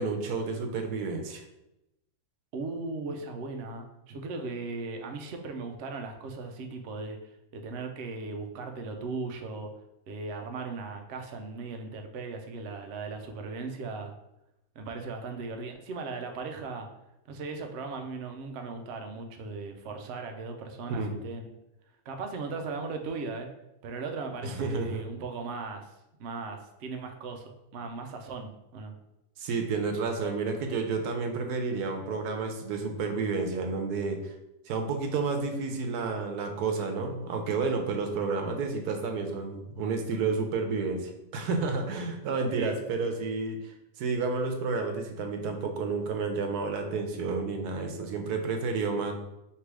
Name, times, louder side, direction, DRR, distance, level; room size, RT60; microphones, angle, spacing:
voice 1, 0.0-1.4 20.9-21.1 24.4-25.0 29.4-34.3 34.7-49.1, right 4 dB, 85° right, 5 dB, 1.2 m, -30 dB
voice 2, 2.5-9.7 10.1-14.1 14.8-16.9 17.3-21.5 22.1-23.5 23.8-25.9 26.2-27.4 27.7-28.9 42.6-42.7, right 3 dB, 65° right, 4 dB, 0.7 m, -37 dB
3.4 x 2.9 x 4.6 m, 0.89 s
omnidirectional pair, 1.6 m